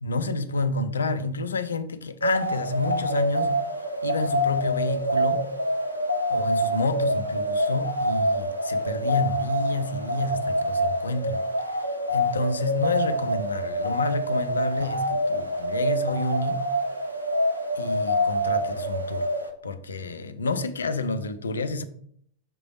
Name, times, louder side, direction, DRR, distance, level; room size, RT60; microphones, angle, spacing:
voice 1, 0.0-3.5 4.0-5.4 6.3-11.4 12.1-16.6 17.7-19.3 19.6-21.8, left 2 dB, 70° left, 0.5 m, -29 dB
sound 1, 2.2-19.5, equal, 90° right, 0.7 m, -26 dB
5.8 x 3.4 x 4.7 m
figure-of-eight pair, 90°, 0 cm